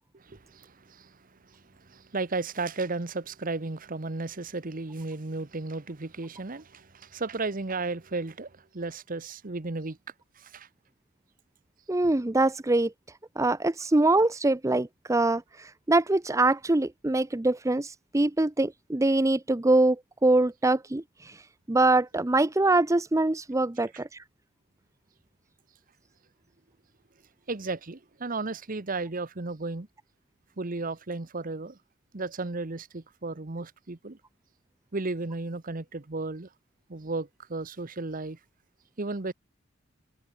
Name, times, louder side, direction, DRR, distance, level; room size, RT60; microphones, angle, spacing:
voice 1, 0.1-1.1 1.5-10.0 10.4-10.7 23.9-24.0 27.5-29.9 30.6-31.8 32.1-34.2 34.9-36.5 36.9-38.4 39.0-39.3, right 3 dB, 45° right, 1.1 m, -34 dB
voice 2, 11.9-12.9 13.4-21.4 21.7-24.2, right 2 dB, 15° right, 0.6 m, -24 dB
head